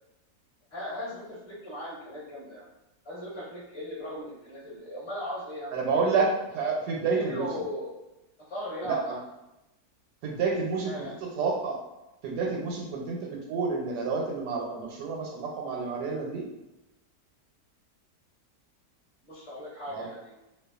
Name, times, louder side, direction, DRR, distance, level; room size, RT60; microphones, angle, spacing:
voice 1, 0.7-2.7 3.0-6.2 7.1-7.9 8.5-9.2 10.8-11.2 19.2-20.3, equal, 20° left, -9 dB, 1.0 m, -38 dB
voice 2, 5.7-6.3 6.5-7.5 8.8-9.2 10.2-10.9 11.2-11.8 12.2-16.5 19.9-20.1, right 4 dB, 80° right, -1 dB, 1.2 m, -29 dB
2.7 x 2.3 x 2.3 m, 0.95 s
omnidirectional pair, 1.7 m